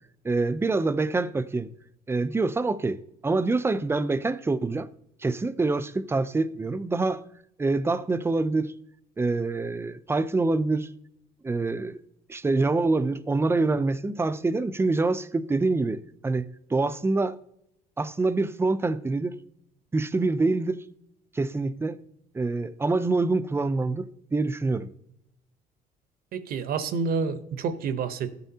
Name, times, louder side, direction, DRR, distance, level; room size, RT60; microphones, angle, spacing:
voice 1, 0.2-1.7 2.1-4.9 5.2-7.2 7.6-8.7 9.2-10.9 11.4-12.0 12.3-17.4 18.0-19.3 19.9-20.8 21.3-22.0 22.3-24.9, right 3 dB, 15° right, 0.5 m, -26 dB
voice 2, 26.3-28.3, right 5 dB, 65° right, 0.9 m, -28 dB
12.5 x 9.2 x 2.8 m
cardioid pair, 110°, 17 cm